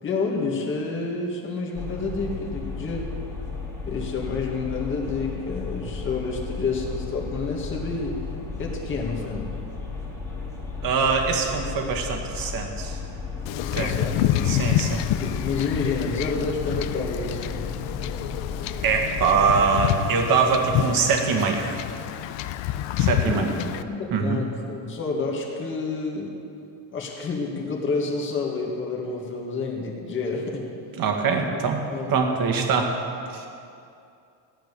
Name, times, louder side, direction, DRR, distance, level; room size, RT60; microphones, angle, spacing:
voice 1, 0.0-3.1 3.9-8.2 8.6-9.5 13.7-14.3 15.0-17.7 23.2-26.3 26.9-30.6 31.4-31.6 31.9-32.2, left 4 dB, 25° left, -2 dB, 1.9 m, -29 dB
sound 1, 1.7-19.7, left 4 dB, 5° left, 2.1 m, -34 dB
voice 2, 10.8-13.0 13.8-13.9 14.5-15.0 18.8-21.8 23.0-23.5 24.1-24.4 31.0-31.8 32.1-32.9 33.3-33.5, right 5 dB, 50° right, 3 dB, 1.9 m, -23 dB
Wind / Ocean / Boat Water vehicle, 13.5-23.8, left 12 dB, 75° left, 0.7 m, -28 dB
15.5 x 10.5 x 6.8 m, 2.5 s
cardioid pair, 175°, 44 cm